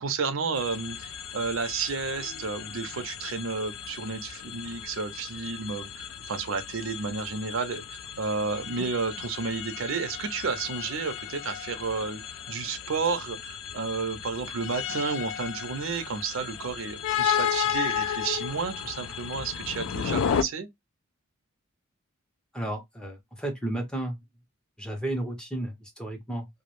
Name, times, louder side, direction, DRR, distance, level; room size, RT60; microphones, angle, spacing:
voice 1, 0.0-20.7, right 5 dB, 65° right, 0.5 m, -31 dB
sound 1, 0.6-20.4, left 8 dB, 65° left, 0.3 m, -34 dB
voice 2, 22.5-24.2 24.8-26.5, right 1 dB, 5° left, 0.5 m, -33 dB
2.2 x 2.0 x 2.9 m
head